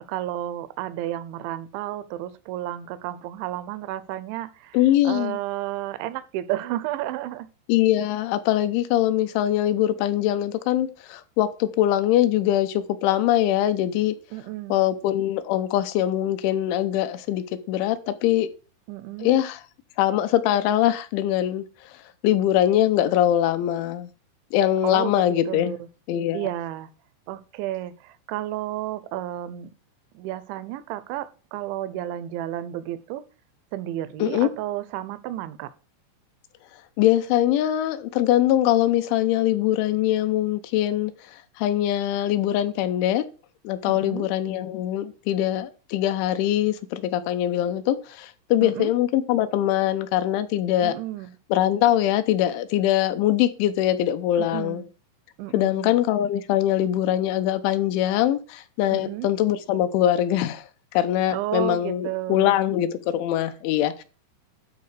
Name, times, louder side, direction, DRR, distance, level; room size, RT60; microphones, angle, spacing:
voice 1, 0.1-4.8 5.0-7.5 14.3-14.9 18.9-19.3 24.8-25.9 26.3-26.9 27.3-29.7 30.1-33.2 33.7-35.7 43.9-44.3 48.6-48.9 50.8-51.4 54.4-54.9 55.4-55.9 58.9-59.3 61.3-62.6, right 14 dB, 85° right, 2.9 m, -32 dB
voice 2, 4.7-5.4 7.7-14.2 14.7-18.5 19.2-19.6 20.0-21.7 22.2-24.1 24.5-25.7 26.1-26.5 34.2-34.5 37.0-43.3 43.6-51.0 51.5-54.8 55.5-60.6 60.9-64.0, left 12 dB, 80° left, 3.2 m, -22 dB
12.5 x 4.4 x 6.5 m
omnidirectional pair, 5.4 m